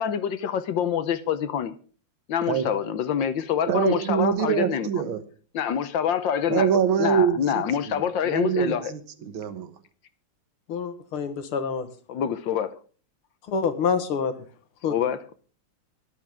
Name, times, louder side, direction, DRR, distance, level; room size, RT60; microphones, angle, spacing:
voice 1, 0.0-1.7 2.3-4.9 5.5-6.7 7.0-8.9 12.1-12.8 14.9-15.2, left 9 dB, 70° left, 1.5 m, -26 dB
voice 2, 3.7-5.2 6.5-9.7, right 8 dB, 75° right, 2.0 m, -25 dB
voice 3, 10.7-11.9 13.5-14.3 14.8-14.9, left 6 dB, 90° left, 2.3 m, -26 dB
17.0 x 11.5 x 3.5 m
omnidirectional pair, 2.3 m